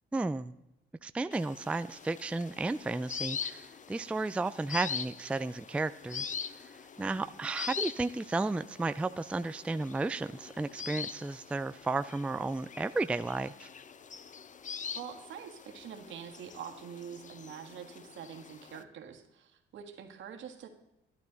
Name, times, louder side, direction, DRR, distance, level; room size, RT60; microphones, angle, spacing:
voice 1, 0.1-0.5 1.0-6.4 6.6-13.7, right 3 dB, 5° right, 12 dB, 0.3 m, -33 dB
sound 1, 1.3-18.8, left 6 dB, 40° left, 0.7 m, -43 dB
voice 2, 6.9-7.3 14.9-20.7, right 8 dB, 70° right, 5 dB, 1.7 m, -45 dB
12.5 x 11.0 x 3.9 m, 0.90 s
cardioid pair, 90°, 20 cm